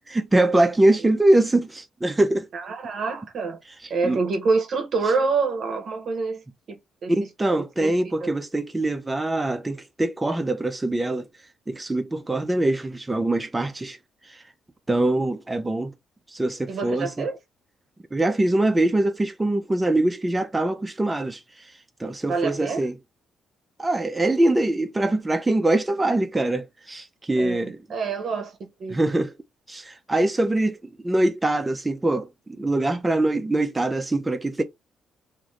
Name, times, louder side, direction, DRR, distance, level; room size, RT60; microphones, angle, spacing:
voice 1, 0.1-2.5 4.0-4.2 7.1-11.3 11.7-14.0 14.9-15.9 16.3-17.1 18.1-21.4 22.0-22.9 23.8-27.8 28.9-29.3 29.7-30.8 31.0-34.6, right 1 dB, 15° right, 0.4 m, -23 dB
voice 2, 2.5-3.6 3.9-7.1 7.8-7.9 8.2-8.3 16.7-17.4 22.3-22.8 27.4-29.1, right 4 dB, 55° right, 0.7 m, -27 dB
2.5 x 2.5 x 3.0 m
cardioid pair, 90°, 0 cm